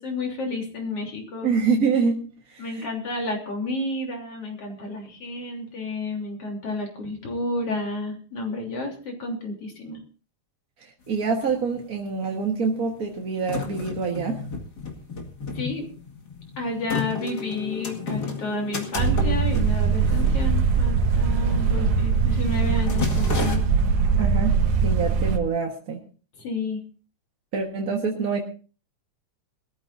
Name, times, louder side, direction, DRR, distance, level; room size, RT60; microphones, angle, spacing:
voice 1, 0.0-1.5 2.6-10.0 15.5-15.9 16.6-23.7 26.4-26.8, left 2 dB, 55° left, 1 dB, 4.2 m, -31 dB
voice 2, 1.4-2.9 10.8-14.4 24.2-26.0 27.5-28.4, right 5 dB, 40° right, 1 dB, 1.4 m, -26 dB
sound 1, 11.1-11.2 11.3-12.2 12.8-21.1 21.4-21.7 22.0-22.3 22.6-23.6, left 4 dB, 35° left, 2.4 m, -33 dB
sound 2, 19.0-25.4, right 5 dB, 80° right, 2.7 m, -21 dB
22.5 x 13.5 x 2.6 m, 0.37 s
omnidirectional pair, 3.3 m